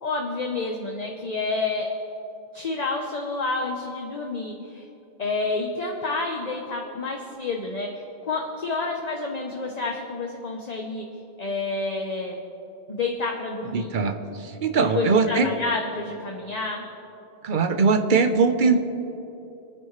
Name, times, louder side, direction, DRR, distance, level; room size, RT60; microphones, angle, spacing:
voice 1, 0.0-1.9 2.5-4.9 5.2-11.1 11.4-12.4 12.9-14.0 14.8-16.8, left 3 dB, 40° left, 1 dB, 1.0 m, -29 dB
voice 2, 13.7-15.5 17.4-18.8, right 4 dB, 55° right, 7 dB, 1.0 m, -21 dB
25.5 x 9.7 x 3.2 m, 3.0 s
omnidirectional pair, 1.1 m